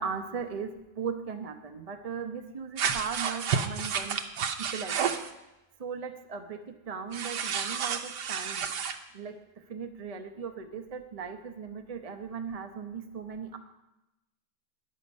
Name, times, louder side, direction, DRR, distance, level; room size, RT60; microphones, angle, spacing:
voice 1, 0.0-4.2 4.6-5.1 5.8-8.6 9.1-9.3 9.7-13.6, right 6 dB, 40° right, 5 dB, 0.5 m, -38 dB
sound 1, 2.8-5.3 7.1-9.0, right 7 dB, 75° right, 1.4 m, -31 dB
14.0 x 10.0 x 5.4 m, 0.95 s
omnidirectional pair, 1.8 m